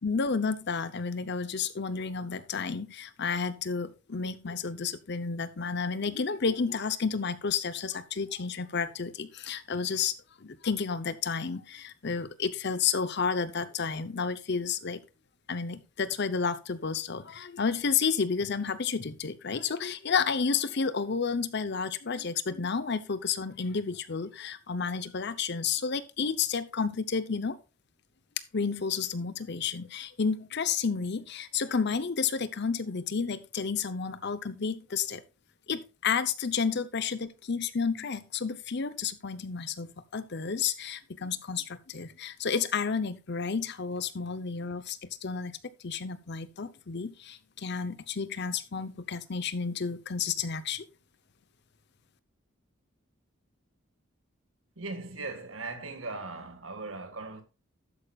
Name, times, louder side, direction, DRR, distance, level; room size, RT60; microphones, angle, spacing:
voice 1, 0.0-10.1 10.4-15.0 15.5-27.6 28.5-35.2 35.7-45.6 45.8-50.8, left 5 dB, 55° left, 0.8 m, -31 dB
voice 2, 54.8-57.4, right 3 dB, 80° right, 1.8 m, -39 dB
12.0 x 8.8 x 2.4 m
head